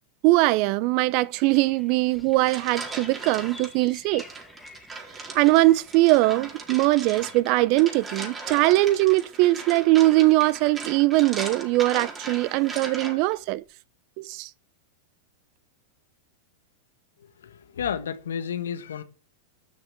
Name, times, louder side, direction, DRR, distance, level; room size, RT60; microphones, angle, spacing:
voice 1, 0.2-4.2 5.3-13.6 14.2-14.5, right 19 dB, 50° right, 0.7 m, -21 dB
sound 1, 1.3-7.4, left 3 dB, 10° left, 2.2 m, -49 dB
sound 2, 2.1-3.7 4.2-13.4, right 4 dB, 20° right, 4.3 m, -38 dB
voice 2, 17.4-19.0, left 8 dB, 75° left, 1.5 m, -31 dB
12.5 x 6.5 x 7.4 m
hypercardioid pair, 95°, 0 cm